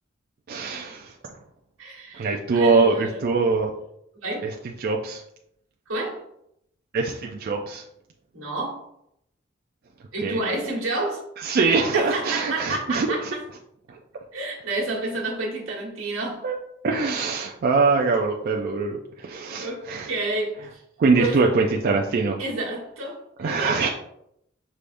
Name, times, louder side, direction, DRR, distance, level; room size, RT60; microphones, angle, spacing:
voice 1, 0.5-1.4 2.1-3.7 4.4-5.2 6.9-7.8 10.2-10.4 11.4-13.3 13.9-14.0 16.4-16.6 16.8-20.1 21.0-22.4 23.4-23.9, right 4 dB, 45° right, 1 dB, 0.3 m, -23 dB
voice 2, 1.8-3.2 4.2-4.5 5.9-6.2 8.3-8.8 10.1-11.2 11.9-13.4 14.3-16.4 19.6-20.8 21.1-21.5 22.4-23.9, right 2 dB, 80° right, -3 dB, 1.4 m, -30 dB
4.9 x 3.4 x 2.5 m, 0.76 s
head